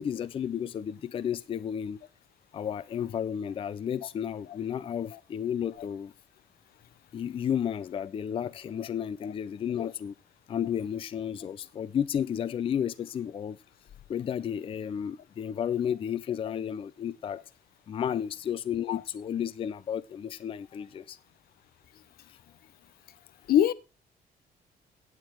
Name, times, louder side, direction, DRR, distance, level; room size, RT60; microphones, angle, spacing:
voice 1, 0.0-2.0 2.5-6.1 7.1-10.1 10.5-13.6 14.1-17.4 17.9-21.2 22.3-22.4, left 9 dB, 35° left, 0.4 m, -32 dB
voice 2, 9.8-9.9 18.9-19.0 23.5-23.7, left 11 dB, 75° left, 0.8 m, -23 dB
9.6 x 8.9 x 4.5 m
cardioid pair, 145°, 16 cm